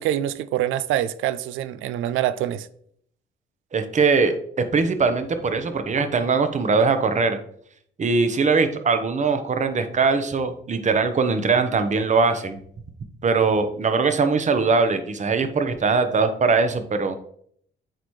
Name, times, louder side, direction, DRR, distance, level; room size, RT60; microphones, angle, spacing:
voice 1, 0.0-2.7, right 12 dB, 85° right, 0.4 m, -25 dB
voice 2, 3.7-7.4 8.0-12.6 13.2-17.2, right 4 dB, 35° right, 0.9 m, -21 dB
7.9 x 4.1 x 3.1 m
cardioid pair, 90°, 20 cm